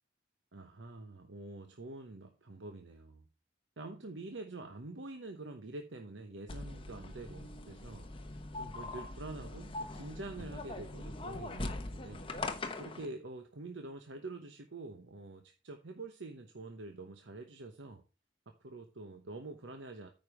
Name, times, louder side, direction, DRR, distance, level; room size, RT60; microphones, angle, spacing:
voice 1, 0.5-3.2 3.8-8.1 8.5-12.3 12.8-18.0 18.5-20.1, right 2 dB, 80° right, 6 dB, 0.9 m, -46 dB
sound 1, 6.5-13.0, left 2 dB, 30° left, 0.9 m, -42 dB
9.2 x 5.3 x 4.9 m, 0.33 s
head